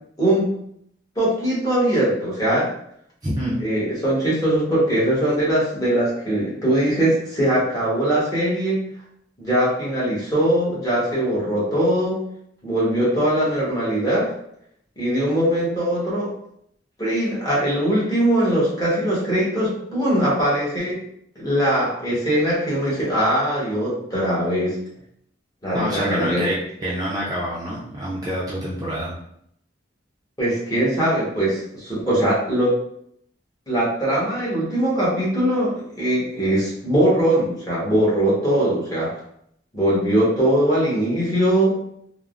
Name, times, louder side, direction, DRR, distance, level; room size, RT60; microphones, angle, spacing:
voice 1, 1.2-2.7 3.6-8.8 9.4-12.2 12.6-14.3 15.0-16.3 17.0-21.0 21.4-24.7 25.6-26.5 30.4-32.7 33.7-39.1 39.7-41.7, right 1 dB, 20° left, -7 dB, 1.1 m, -21 dB
voice 2, 3.2-3.6 25.7-29.1, equal, 20° right, -7 dB, 0.5 m, -27 dB
3.4 x 2.0 x 2.4 m, 0.72 s
head